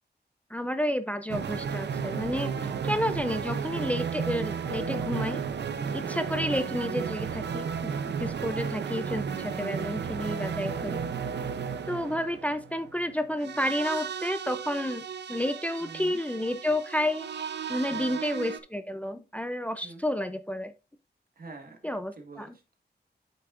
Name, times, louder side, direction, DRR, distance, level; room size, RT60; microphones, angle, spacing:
voice 1, 0.5-2.6 2.8-5.4 5.9-7.9 8.2-11.0 11.9-17.3 17.7-20.7 21.8-22.5, left 1 dB, 10° left, 0.5 m, -31 dB
sound 1, 1.3-18.6, right 6 dB, 80° right, 0.6 m, -33 dB
voice 2, 2.5-2.8 5.8-6.1 8.4-8.7 10.6-10.9 15.8-16.2 17.9-18.2 19.8-20.0 21.3-21.9 22.2-22.7, right 3 dB, 55° right, 1.7 m, -46 dB
8.3 x 6.0 x 2.5 m
wide cardioid pair, 100°, 18 cm